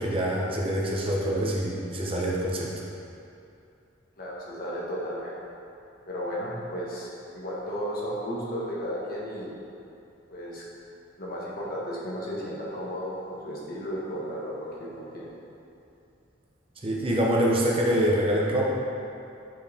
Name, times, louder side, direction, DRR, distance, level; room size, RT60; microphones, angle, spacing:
voice 1, 0.0-2.7 16.8-18.7, equal, 30° right, -3 dB, 0.9 m, -25 dB
voice 2, 4.2-5.3 6.1-7.1 7.3-9.5 10.3-10.6 11.2-15.3, equal, 50° left, -6 dB, 1.4 m, -34 dB
7.5 x 4.6 x 3.6 m, 2.6 s
head